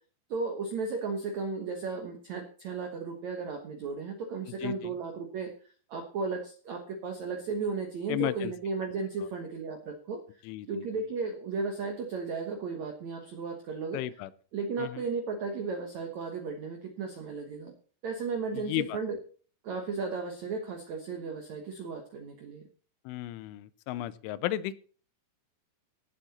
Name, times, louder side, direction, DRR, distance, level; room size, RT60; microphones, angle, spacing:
voice 1, 0.3-5.5 5.9-10.2 10.7-14.0 14.5-17.7 18.0-19.2 19.6-22.6, right 4 dB, 85° right, 5 dB, 1.6 m, -35 dB
voice 2, 4.6-4.9 8.1-8.5 10.5-10.8 13.9-14.3 14.8-15.0 18.5-19.0 23.1-24.7, left 15 dB, 85° left, 17 dB, 3.1 m, -34 dB
17.5 x 7.8 x 4.2 m, 0.41 s
omnidirectional pair, 5.5 m